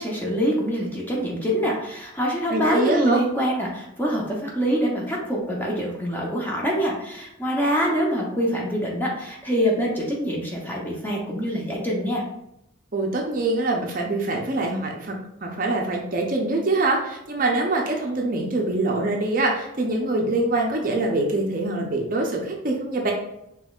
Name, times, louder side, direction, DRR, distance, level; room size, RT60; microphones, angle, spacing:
voice 1, 0.0-12.2, equal, 10° left, -3 dB, 0.8 m, -25 dB
voice 2, 2.5-3.2 12.9-15.2 15.4-23.1, right 2 dB, 45° right, 1 dB, 0.6 m, -24 dB
5.2 x 3.1 x 2.4 m, 0.82 s
head